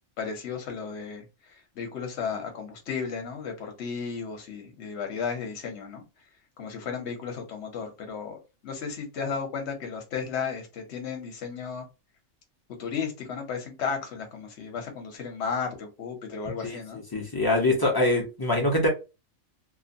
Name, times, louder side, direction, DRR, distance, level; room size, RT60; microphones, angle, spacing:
voice 1, 0.2-1.2 1.8-6.0 6.6-11.8 12.8-17.0, left 6 dB, 55° left, 1.1 m, -34 dB
voice 2, 16.6-18.9, left 1 dB, 25° left, 0.5 m, -24 dB
2.8 x 2.1 x 2.6 m
omnidirectional pair, 1.4 m